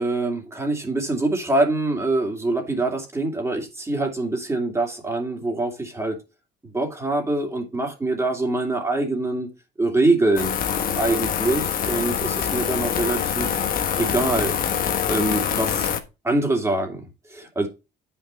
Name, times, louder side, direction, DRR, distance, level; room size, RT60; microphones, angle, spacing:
voice 1, 0.0-6.2 6.6-9.5 9.8-10.5 11.0-13.6 14.0-14.5 15.1-15.9 16.2-17.7, right 2 dB, 15° right, 2.5 m, -24 dB
sound 1, 10.4-16.0, left 8 dB, 55° left, 1.3 m, -25 dB
9.3 x 5.7 x 4.2 m
cardioid pair, 110°, 17 cm